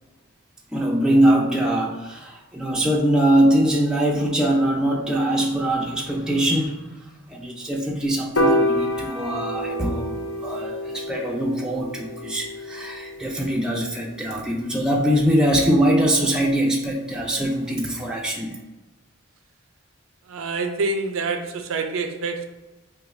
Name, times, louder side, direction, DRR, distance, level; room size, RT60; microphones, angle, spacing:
voice 1, 0.7-6.9 7.3-18.6, right 1 dB, 5° right, -2 dB, 0.3 m, -22 dB
Piano, 8.4-14.7, equal, 70° left, 0.5 m, -27 dB
voice 2, 20.3-22.4, right 3 dB, 75° right, 6 dB, 0.4 m, -26 dB
2.6 x 2.3 x 4.1 m, 1.1 s
head